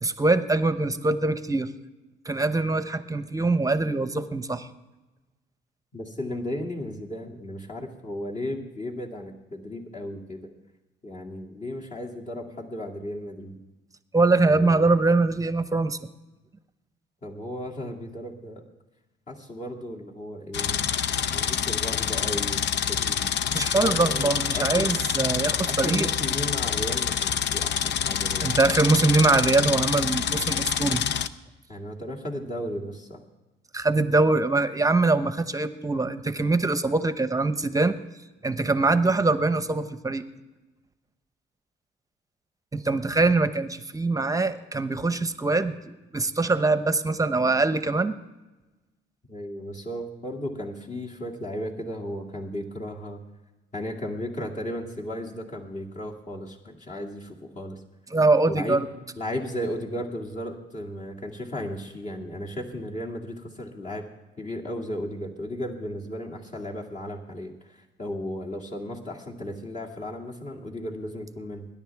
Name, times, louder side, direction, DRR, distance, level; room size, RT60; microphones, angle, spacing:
voice 1, 0.0-1.7 2.2-4.7 14.1-16.1 23.5-26.1 28.4-31.0 33.7-37.9 38.4-40.2 42.7-48.2 58.1-58.9, right 3 dB, 15° right, 11 dB, 0.9 m, -23 dB
voice 2, 5.9-10.5 11.0-13.6 14.4-14.9 17.2-18.6 19.3-23.3 23.7-24.9 25.7-28.5 31.7-33.2 49.3-53.2 53.7-57.8 58.5-58.8 59.2-64.0 64.4-71.7, left 1 dB, 35° left, -2 dB, 2.4 m, -35 dB
sound 1, 20.5-31.3, left 8 dB, 65° left, 0.6 m, -27 dB
21.0 x 10.5 x 3.5 m, 1.1 s
cardioid pair, 90°, 20 cm